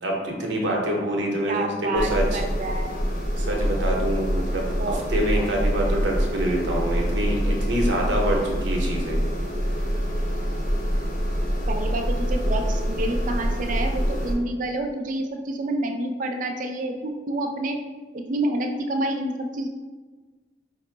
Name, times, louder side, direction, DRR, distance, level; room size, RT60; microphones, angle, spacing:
voice 1, 0.0-2.4 3.4-9.2, right 1 dB, 75° right, -1 dB, 0.8 m, -26 dB
voice 2, 1.5-3.0 4.8-5.0 5.4-5.5 11.7-17.8 18.1-19.7, right 1 dB, 45° right, 3 dB, 0.4 m, -28 dB
sound 1, 2.0-14.3, equal, 45° left, 0.7 m, -25 dB
4.9 x 2.0 x 3.2 m, 1.3 s
head